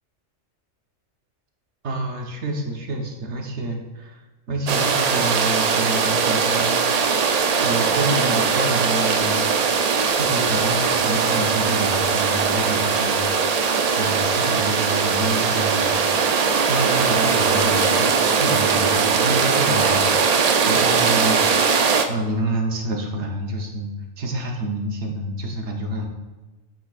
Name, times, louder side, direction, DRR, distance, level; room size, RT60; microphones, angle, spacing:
voice 1, 1.8-4.2 4.5-6.8 7.6-9.5 10.1-21.7 22.1-23.9 24.2-26.1, right 1 dB, 65° right, 1 dB, 1.3 m, -28 dB
sound 1, 4.7-22.1, right 5 dB, 80° right, 0.3 m, -20 dB
8.7 x 6.1 x 2.4 m, 1.2 s
omnidirectional pair, 1.3 m